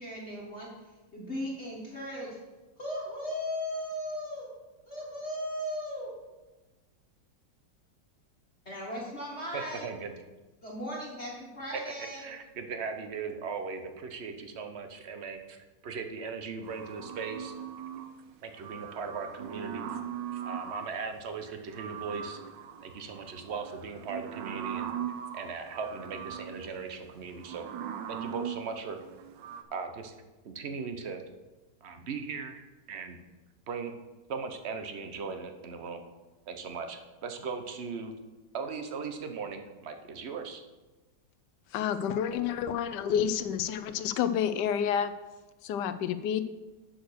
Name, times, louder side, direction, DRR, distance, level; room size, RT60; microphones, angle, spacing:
voice 1, 0.0-2.4 2.8-4.5 4.9-6.1 8.7-9.8 10.6-12.3, equal, 40° left, -5 dB, 1.9 m, -37 dB
voice 2, 9.5-10.1 11.7-11.8 12.2-17.5 18.4-20.0 20.3-22.4 22.8-24.9 25.3-27.6 28.1-29.0 29.7-30.1 30.4-31.2 31.8-32.6 32.9-33.2 33.7-33.9 34.3-36.0 36.5-38.1 38.5-40.6, right 5 dB, 50° right, 6 dB, 0.9 m, -38 dB
sound 1, 16.6-18.2 18.5-21.0 21.5-29.6, right 9 dB, 85° right, 1.4 m, -40 dB
voice 3, 41.7-45.1 45.6-46.4, left 8 dB, 75° left, 11 dB, 1.2 m, -29 dB
7.8 x 6.4 x 6.3 m, 1.2 s
omnidirectional pair, 1.9 m